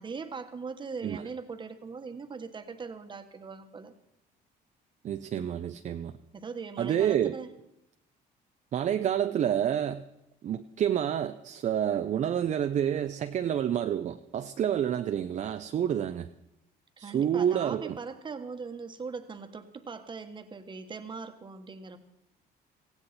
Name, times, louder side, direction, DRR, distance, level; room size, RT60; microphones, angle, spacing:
voice 1, 0.0-3.9 6.3-7.5 17.0-22.0, right 5 dB, 30° right, 8 dB, 1.4 m, -40 dB
voice 2, 5.0-6.1 6.8-7.3 8.7-10.0 10.4-16.3 17.0-18.0, right 9 dB, 45° right, 8 dB, 0.6 m, -28 dB
18.0 x 15.5 x 4.2 m, 0.84 s
cardioid pair, 110°, 17 cm